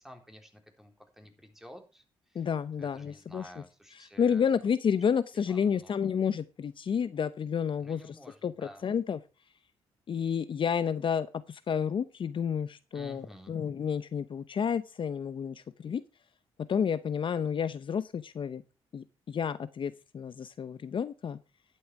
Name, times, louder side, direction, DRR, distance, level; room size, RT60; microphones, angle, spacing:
voice 1, 0.0-2.0 2.3-2.5 2.8-4.5 5.5-5.9 7.8-8.8 12.9-13.5, equal, 5° right, 4 dB, 3.9 m, -51 dB
voice 2, 2.3-3.6 3.9-9.2 10.1-16.0 16.7-18.6 18.9-21.4, left 7 dB, 50° left, 14 dB, 0.7 m, -30 dB
11.5 x 8.7 x 4.7 m, 0.32 s
supercardioid pair, 60°, 11 cm